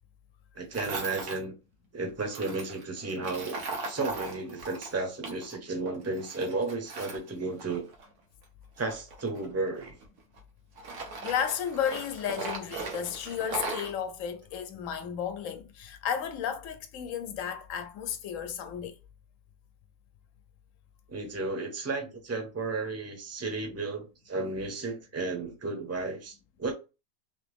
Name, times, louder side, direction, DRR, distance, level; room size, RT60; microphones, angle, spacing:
voice 1, 0.5-1.6 1.9-7.9 8.8-9.9 21.1-26.7, right 3 dB, 15° right, 0.6 m, -33 dB
Tools, 0.7-1.4 2.3-5.6 5.9-8.1 8.8-10.4 10.8-13.9, right 3 dB, 85° right, 1.5 m, -38 dB
voice 2, 11.2-18.9, left 8 dB, 65° left, 1.0 m, -33 dB
3.6 x 3.0 x 3.4 m
omnidirectional pair, 1.6 m